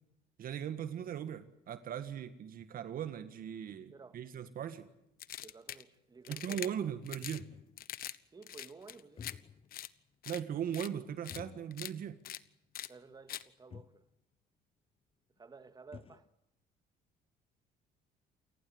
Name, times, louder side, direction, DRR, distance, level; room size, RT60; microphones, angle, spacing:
voice 1, 0.4-4.9 6.3-7.5 10.3-12.2, right 9 dB, 55° right, 1.7 m, -39 dB
sound 1, 4.9-5.0 5.4-5.5 6.2-6.3 6.5-7.9 9.0-9.8 10.1-10.2 11.3-12.1 12.4-12.5 13.4-13.5 13.7-14.0 15.4-15.5 15.6-16.3, left 7 dB, 35° left, 0.9 m, -53 dB
sound 2, 5.2-5.8 6.2-6.7 7.1-7.4 7.8-8.2 8.4-9.3 9.7-9.9 10.2-10.4 10.7-10.9 11.2-11.4 11.7-11.9 12.2-12.4 12.7-12.9 13.3-13.4, left 12 dB, 60° left, 1.2 m, -43 dB
voice 2, 5.4-6.9 8.3-9.3 12.9-14.0 15.4-16.3, right 4 dB, 25° right, 2.2 m, -54 dB
29.0 x 18.5 x 8.0 m
cardioid pair, 110°, 17 cm